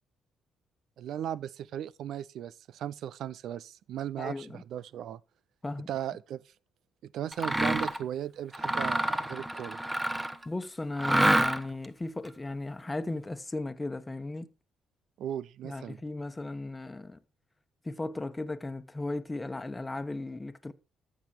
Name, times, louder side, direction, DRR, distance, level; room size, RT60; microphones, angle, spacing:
voice 1, 1.0-5.2 5.9-6.4 7.0-9.8 15.2-16.0, right 10 dB, 70° right, 0.5 m, -37 dB
voice 2, 4.2-4.6 5.6-5.9 10.4-14.5 15.6-17.2 17.8-20.7, left 2 dB, 20° left, 1.2 m, -36 dB
Mechanisms, 7.3-8.0 8.5-10.4 11.0-11.8, right 1 dB, 15° right, 1.2 m, -27 dB
14.0 x 6.2 x 4.5 m
supercardioid pair, 60°, 0 cm